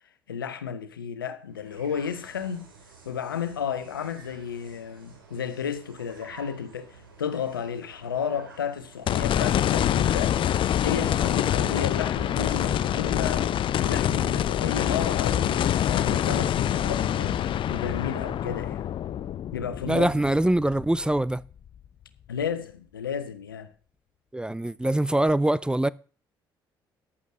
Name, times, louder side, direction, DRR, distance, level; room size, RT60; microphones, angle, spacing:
voice 1, 0.3-2.7 3.0-10.4 10.8-13.5 13.8-18.9 19.5-20.1 22.3-23.7, left 7 dB, 80° left, 1.0 m, -32 dB
sound 1, 1.5-15.7, right 4 dB, 80° right, 2.6 m, -52 dB
sound 2, 9.1-21.4 21.8-21.9 25.3-25.4, left 10 dB, 50° left, 0.7 m, -25 dB
voice 2, 19.9-21.4 24.3-25.9, right 1 dB, 10° right, 0.5 m, -23 dB
14.5 x 11.0 x 3.8 m
figure-of-eight pair, 45°, 11 cm